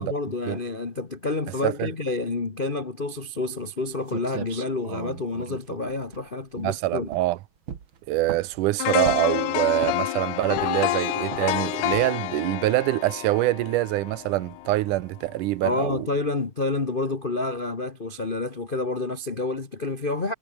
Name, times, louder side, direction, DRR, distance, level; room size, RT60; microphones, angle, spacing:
voice 1, 0.0-7.1 15.6-20.3, left 3 dB, 55° left, 0.5 m, -29 dB
sound 1, 3.8-3.9 4.1-6.7 7.1-7.3 7.7-8.6 9.1-9.4 9.8-10.2 10.5-10.9 11.3-11.5 11.9-12.3, right 7 dB, 45° right, 2.2 m, -38 dB
voice 2, 6.6-7.4 8.1-16.1, right 17 dB, 85° right, 2.3 m, -25 dB
sound 2, 8.8-14.8 15.2-15.3, left 16 dB, 80° left, 2.3 m, -28 dB
omnidirectional pair, 3.5 m